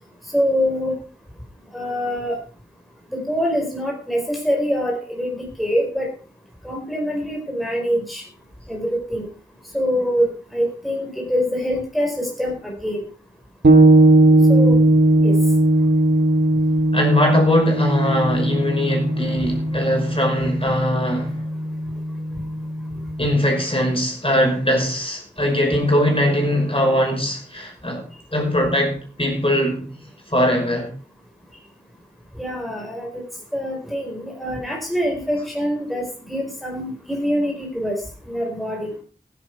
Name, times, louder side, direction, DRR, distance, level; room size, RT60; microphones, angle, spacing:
voice 1, 0.3-0.9 1.7-2.4 3.1-6.1 6.6-8.2 8.7-9.2 9.7-13.0 14.5-14.8 15.2-15.4 32.4-33.2 33.5-38.0 38.3-38.9, equal, ahead, 4.3 m, -24 dB
sound 1, 13.6-23.3, right 1 dB, 75° right, 1.8 m, -18 dB
voice 2, 16.9-21.4 23.2-28.0 28.3-29.8 30.3-30.9, equal, 30° left, 5.8 m, -21 dB
15.5 x 10.5 x 4.6 m
wide cardioid pair, 50°, 18 cm